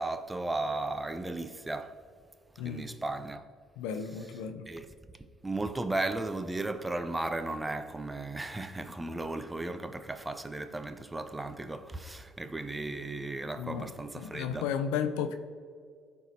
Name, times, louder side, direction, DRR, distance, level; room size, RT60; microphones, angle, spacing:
voice 1, 0.0-2.0 2.6-3.5 4.7-4.9 5.4-14.7, right 2 dB, 15° right, 0.6 m, -35 dB
voice 2, 3.8-4.7 13.6-15.3, left 7 dB, 90° left, 0.5 m, -34 dB
13.5 x 4.7 x 2.8 m
supercardioid pair, 75°, 0 cm